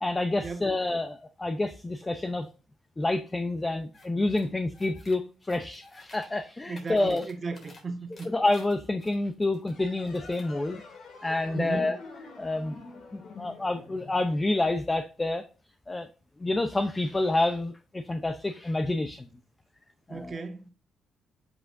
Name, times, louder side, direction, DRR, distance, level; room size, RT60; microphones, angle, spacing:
voice 1, 0.0-2.5 3.0-7.3 8.2-10.8 11.2-12.0 12.4-12.8 13.1-15.4 15.9-16.1 16.4-19.3 20.1-20.4, left 2 dB, 20° left, 0.7 m, -28 dB
sound 1, 3.9-4.1 4.3-5.2 5.5-6.3 6.6-7.8 8.1-9.7 10.0-10.5, left 2 dB, 45° left, 3.5 m, -53 dB
voice 2, 6.7-8.3 11.5-11.9 20.1-20.7, right 4 dB, 35° right, 1.5 m, -35 dB
sound 2, 9.6-14.9, left 4 dB, 65° left, 3.0 m, -48 dB
7.9 x 5.9 x 2.6 m
cardioid pair, 90°, 0 cm